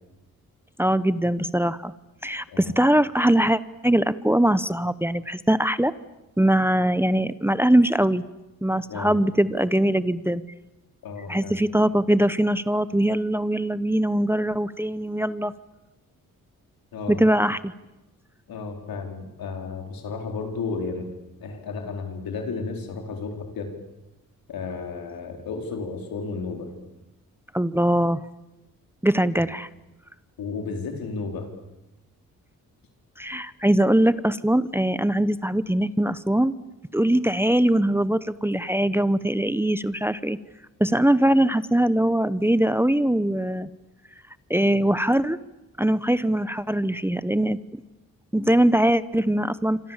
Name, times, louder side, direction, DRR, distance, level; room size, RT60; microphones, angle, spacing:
voice 1, 0.8-1.9 2.2-5.9 6.4-8.2 8.6-10.4 11.3-15.5 17.1-17.7 27.5-28.2 29.0-29.7 33.2-36.5 36.9-40.4 40.8-43.7 44.5-45.4 45.8-47.6 48.3-49.9, right 1 dB, 5° right, 15 dB, 0.9 m, -22 dB
voice 2, 11.0-11.6 16.9-17.2 18.5-21.1 21.4-23.7 24.5-26.7 30.4-31.5, left 4 dB, 85° left, 3 dB, 4.4 m, -33 dB
27.0 x 25.5 x 7.4 m, 0.99 s
cardioid pair, 70°, 34 cm